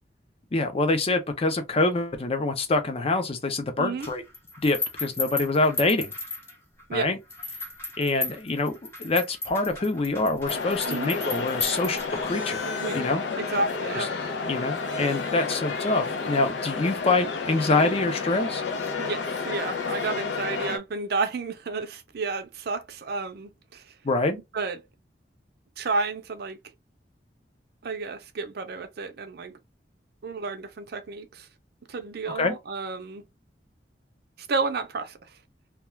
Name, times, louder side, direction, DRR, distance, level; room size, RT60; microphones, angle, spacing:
voice 1, 0.5-4.2 4.6-6.1 6.9-7.2 8.0-12.6 12.9-13.2 13.9-14.1 14.5-18.6 24.0-24.4 32.3-32.5, left 2 dB, 35° left, 0.5 m, -25 dB
voice 2, 3.8-4.1 6.9-7.1 10.9-11.1 12.8-13.0 13.4-14.1 19.0-23.9 24.5-24.8 25.8-26.6 27.8-29.6 30.2-31.5 31.9-33.2 34.4-35.2, right 4 dB, 60° right, 0.5 m, -31 dB
sound 1, 4.0-6.8 7.3-12.4, left 3 dB, 15° left, 0.9 m, -35 dB
sound 2, 10.5-20.8, left 4 dB, 80° left, 0.5 m, -31 dB
2.3 x 2.2 x 3.0 m
head